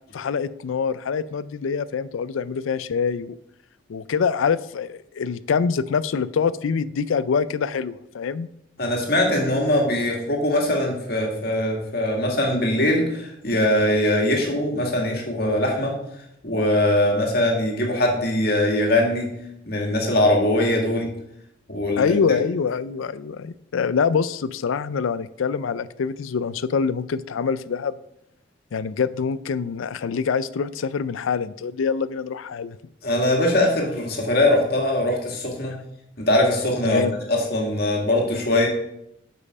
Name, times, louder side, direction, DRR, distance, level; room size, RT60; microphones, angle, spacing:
voice 1, 0.1-3.3 3.9-8.5 22.0-27.9 28.7-32.8 36.9-37.1, left 6 dB, 85° left, 16 dB, 0.4 m, -25 dB
voice 2, 8.8-15.9 16.4-19.3 19.7-21.1 21.7-22.4 33.0-35.8 36.2-38.7, left 1 dB, 50° left, 0 dB, 1.9 m, -21 dB
8.2 x 5.6 x 4.9 m, 0.78 s
head